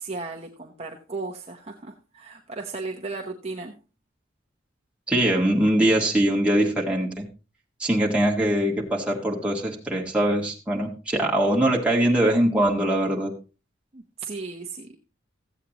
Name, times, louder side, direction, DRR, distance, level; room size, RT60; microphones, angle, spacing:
voice 1, 0.0-3.7 13.9-15.0, right 3 dB, 30° right, 1 dB, 0.8 m, -35 dB
voice 2, 5.1-7.3 7.8-13.3, right 1 dB, 5° right, -3 dB, 1.7 m, -22 dB
14.5 x 8.2 x 3.0 m, 0.31 s
head